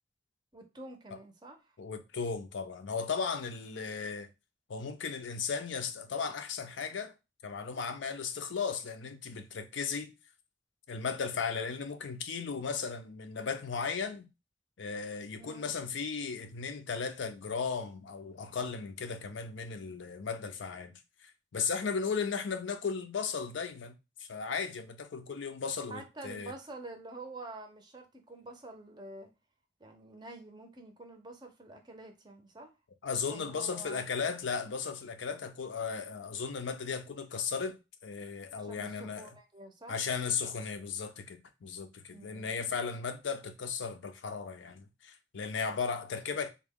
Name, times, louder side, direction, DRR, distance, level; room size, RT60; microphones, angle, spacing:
voice 1, 0.5-1.8 15.3-15.9 25.9-29.3 29.8-32.7 33.2-34.0 38.5-40.0 42.1-42.7, right 2 dB, 20° right, 0.6 m, -48 dB
voice 2, 1.8-4.3 4.7-7.1 7.4-10.1 10.9-14.3 14.8-20.9 21.2-23.9 24.2-26.5 33.0-39.2 39.9-46.5, left 5 dB, 70° left, 0.5 m, -36 dB
3.5 x 2.1 x 3.5 m
head